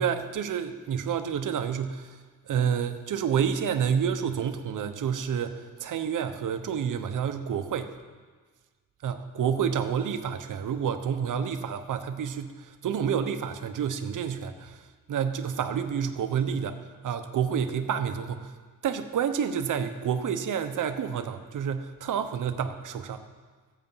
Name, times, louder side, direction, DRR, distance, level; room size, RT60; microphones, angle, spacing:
voice 1, 0.0-7.9 9.0-18.5 18.8-23.2, right 7 dB, 65° right, 7 dB, 1.0 m, -29 dB
14.5 x 8.3 x 5.6 m, 1.4 s
cardioid pair, 100°, 33 cm